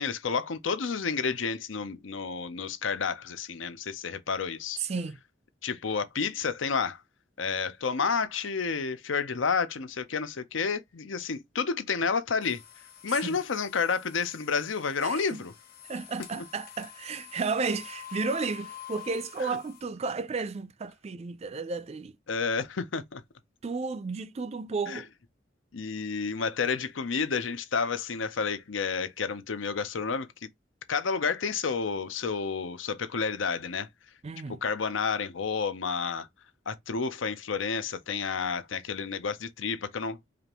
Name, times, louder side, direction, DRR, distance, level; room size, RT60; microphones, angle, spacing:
voice 1, 0.0-4.8 5.6-7.0 7.4-12.6 13.0-15.5 16.4-16.5 19.4-19.6 22.3-23.2 24.9-25.0 25.7-30.3 30.9-33.9 34.6-36.3 36.7-40.3, left 5 dB, 85° left, 0.7 m, -30 dB
voice 2, 4.8-5.2 13.2-13.4 15.0-15.4 15.9-22.1 23.6-25.1 34.2-34.6, right 4 dB, 35° right, 0.4 m, -33 dB
sound 1, 12.4-19.8, left 10 dB, 50° left, 1.1 m, -47 dB
5.0 x 2.5 x 2.9 m
head